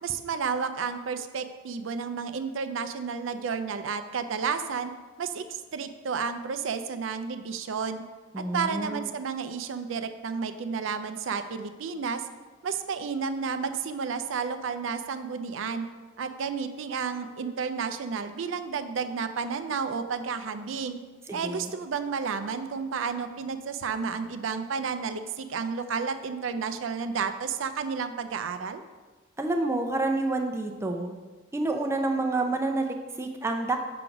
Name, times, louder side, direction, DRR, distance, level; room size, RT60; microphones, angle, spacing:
voice 1, 0.0-4.9 5.2-8.0 8.4-12.3 12.6-15.9 16.2-21.0 21.3-28.8, right 5 dB, 85° right, 10 dB, 0.4 m, -31 dB
voice 2, 8.3-9.1 21.3-21.7 29.4-31.1 31.5-33.8, right 2 dB, 15° right, 3 dB, 0.4 m, -28 dB
5.9 x 3.9 x 5.8 m, 1.3 s
head